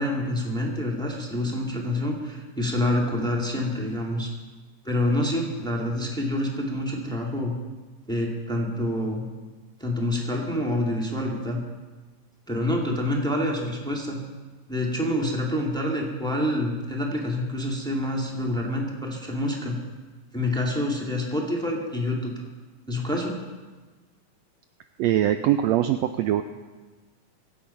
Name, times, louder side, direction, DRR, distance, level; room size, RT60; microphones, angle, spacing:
voice 1, 0.0-4.3 4.8-7.5 8.1-9.2 9.8-11.6 12.5-14.2 14.7-19.8 20.3-22.3 22.9-23.3, left 1 dB, ahead, -1 dB, 1.7 m, -27 dB
voice 2, 25.0-26.4, right 12 dB, 85° right, 8 dB, 1.5 m, -22 dB
24.0 x 8.7 x 5.7 m, 1.3 s
omnidirectional pair, 3.6 m